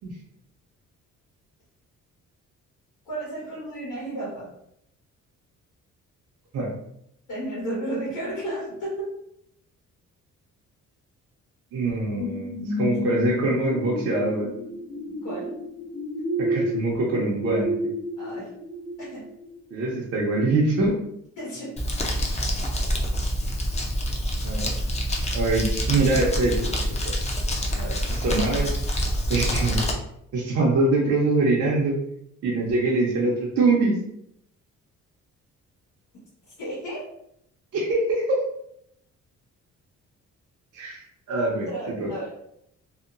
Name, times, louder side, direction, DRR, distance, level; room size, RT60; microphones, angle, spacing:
voice 1, 3.0-4.5 7.3-9.1 15.1-15.5 18.2-18.5 19.0-19.2 21.4-21.8 27.7-28.0 36.6-37.0 41.7-42.4, right 1 dB, 85° left, -7 dB, 1.3 m, -33 dB
voice 2, 11.7-14.5 16.4-17.7 19.7-21.0 24.4-24.7 25.3-27.1 28.1-28.7 29.3-29.9 30.3-32.0 32.4-34.0 37.7-38.4 40.7-41.0 41.3-41.7 42.0-42.1, right 2 dB, 55° right, -5 dB, 0.7 m, -24 dB
sound 1, 12.2-19.6 20.1-20.2, equal, 60° left, 0.8 m, -30 dB
Crumpling crinkling, 21.8-29.9, equal, 20° left, 0.5 m, -26 dB
2.8 x 2.1 x 2.5 m, 0.75 s
cardioid pair, 90°, 30 cm